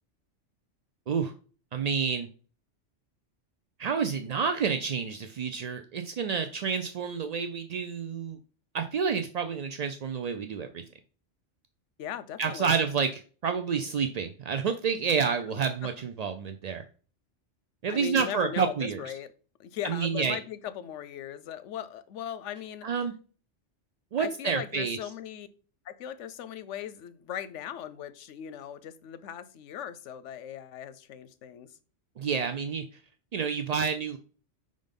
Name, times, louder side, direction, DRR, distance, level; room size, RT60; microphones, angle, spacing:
voice 1, 1.7-2.3 3.8-8.4 8.7-10.8 12.4-16.8 17.8-19.0 19.8-20.4 22.8-23.1 24.1-25.0 32.2-33.0 33.3-34.2, right 6 dB, 65° right, 0.4 m, -29 dB
voice 2, 12.0-12.7 17.9-19.3 19.6-22.9 24.2-25.5 25.8-31.7, left 9 dB, 90° left, 0.9 m, -38 dB
5.2 x 3.9 x 5.2 m
omnidirectional pair, 1.2 m